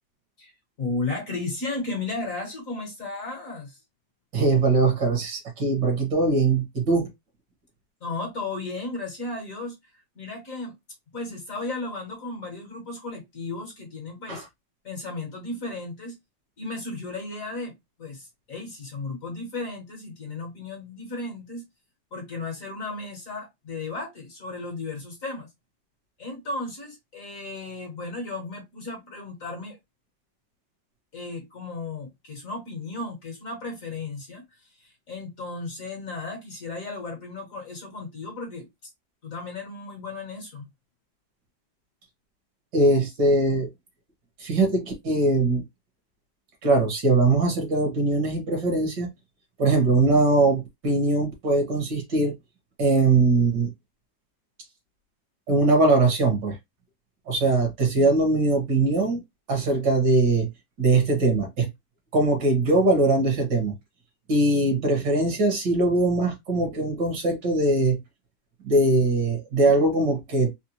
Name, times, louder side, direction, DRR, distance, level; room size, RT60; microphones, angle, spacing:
voice 1, 0.8-3.8 8.0-10.7 11.1-14.5 14.8-16.2 16.6-21.6 22.1-25.5 26.2-29.8 31.1-38.9 39.2-40.7, left 3 dB, 50° left, 1.2 m, -35 dB
voice 2, 4.3-7.1 14.3-14.5 42.7-43.7 44.4-45.6 46.6-49.1 49.6-52.3 52.8-53.7 55.5-56.6 57.3-59.2 59.5-60.5 60.8-61.7 62.1-63.7 64.3-68.0 68.6-70.5, right 2 dB, 60° right, 1.8 m, -21 dB
4.2 x 2.1 x 2.9 m
omnidirectional pair, 2.1 m